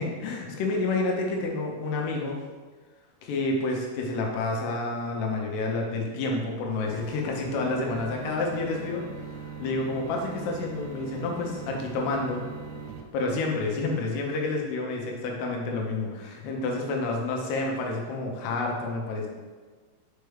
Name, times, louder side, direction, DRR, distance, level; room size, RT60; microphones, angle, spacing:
voice 1, 0.0-2.4 3.2-12.4 13.1-19.3, left 3 dB, 90° left, 0 dB, 2.9 m, -29 dB
sound 1, 6.9-13.0, right 6 dB, 85° right, 2.5 m, -40 dB
6.7 x 4.5 x 3.4 m, 1.4 s
omnidirectional pair, 4.6 m